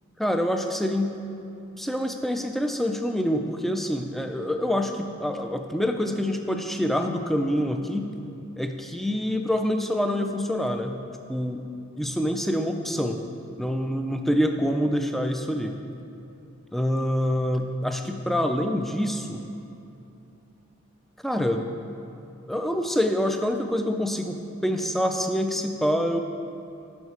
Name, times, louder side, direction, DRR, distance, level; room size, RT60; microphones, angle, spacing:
voice 1, 0.2-1.2 1.7-8.1 8.6-11.0 11.3-11.6 12.0-13.2 13.6-15.8 16.7-19.4 21.2-21.7 22.5-26.2, equal, ahead, 5 dB, 0.4 m, -26 dB
9.6 x 5.8 x 4.7 m, 2.8 s
head